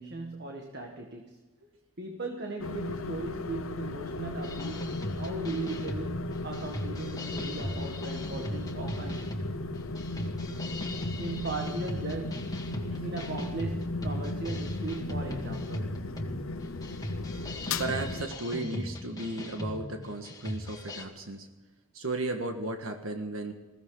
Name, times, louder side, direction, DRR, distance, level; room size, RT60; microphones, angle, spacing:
voice 1, 0.0-1.4 2.0-9.4 11.2-12.5 13.0-16.0, right 3 dB, 55° right, 3 dB, 1.7 m, -38 dB
sound 1, 2.6-18.2, left 2 dB, 80° left, 0.9 m, -36 dB
sound 2, 4.4-21.0, left 1 dB, 20° left, 1.9 m, -38 dB
voice 2, 17.8-21.5 21.9-23.5, right 2 dB, 80° right, 4 dB, 1.6 m, -35 dB
21.5 x 16.0 x 3.9 m, 1.2 s
head